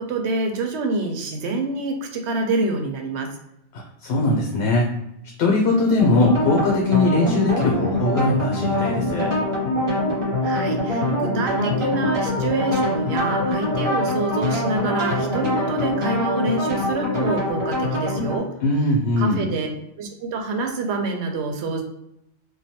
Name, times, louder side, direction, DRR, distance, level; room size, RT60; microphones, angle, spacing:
voice 1, 0.0-3.3 10.4-18.5 19.2-19.7 20.0-21.8, right 3 dB, 80° right, 3 dB, 0.9 m, -26 dB
voice 2, 3.7-4.9 5.4-9.3 18.6-19.4, left 2 dB, 75° left, 0 dB, 0.8 m, -20 dB
sound 1, 6.0-18.4, left 1 dB, 30° right, 0.8 m, -24 dB
3.1 x 2.2 x 2.8 m, 0.83 s
omnidirectional pair, 1.1 m